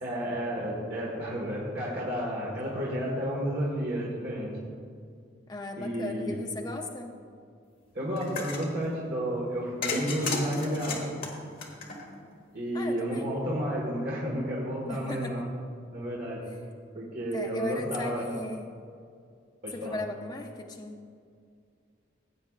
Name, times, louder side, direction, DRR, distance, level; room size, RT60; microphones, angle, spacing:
voice 1, 0.0-4.5 5.8-6.4 7.9-11.2 12.5-15.4 15.9-16.4 16.9-18.2 19.6-20.0, equal, 50° right, -6 dB, 1.6 m, -31 dB
voice 2, 5.5-7.1 12.7-13.3 14.9-15.5 17.3-18.7 19.7-21.0, left 2 dB, 20° left, 2 dB, 0.5 m, -37 dB
sound 1, 8.2-8.7 9.8-12.3, left 3 dB, 45° left, 1.4 m, -33 dB
15.5 x 8.5 x 2.4 m, 2.2 s
head